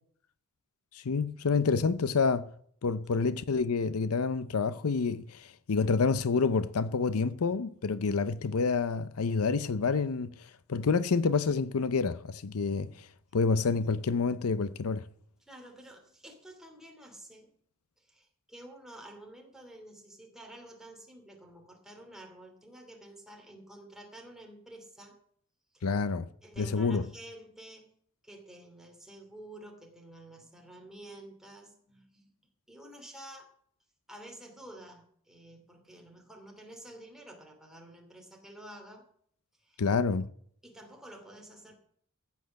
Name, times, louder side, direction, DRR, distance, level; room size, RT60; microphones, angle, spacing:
voice 1, 0.9-2.5 2.8-13.1 13.3-15.0 25.8-26.3 26.6-27.0 39.8-40.3, left 4 dB, 75° left, 0.6 m, -28 dB
voice 2, 15.4-17.5 18.0-25.2 25.7-25.9 26.4-27.9 28.2-32.3 32.7-33.5 34.1-39.0 39.5-39.8 40.6-41.7, right 1 dB, ahead, 2.7 m, -50 dB
14.5 x 8.4 x 6.4 m
head